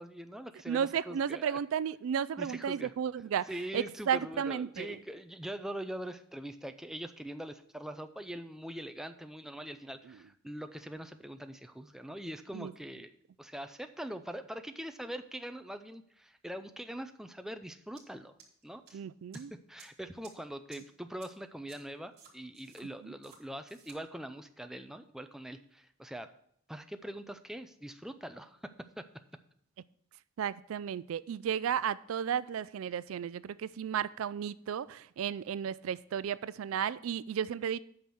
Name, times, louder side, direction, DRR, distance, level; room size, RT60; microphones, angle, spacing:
voice 1, 0.0-1.6 2.4-2.9 3.5-13.1 13.4-18.4 18.6-19.0 19.3-26.3 26.7-29.0, right 1 dB, ahead, 0.5 m, -43 dB
voice 2, 0.7-4.9 12.5-12.7 18.9-19.5 23.0-23.1 30.4-37.8, right 8 dB, 80° right, 0.3 m, -33 dB
sound 1, 18.0-18.1 18.4-18.9 19.3-19.4 19.8-19.9 20.2-20.3 20.7-20.8 21.2-21.3 21.7-21.8 22.2-22.8 23.2-23.4 23.7-24.0, right 6 dB, 55° right, 2.2 m, -55 dB
8.7 x 5.9 x 6.2 m
head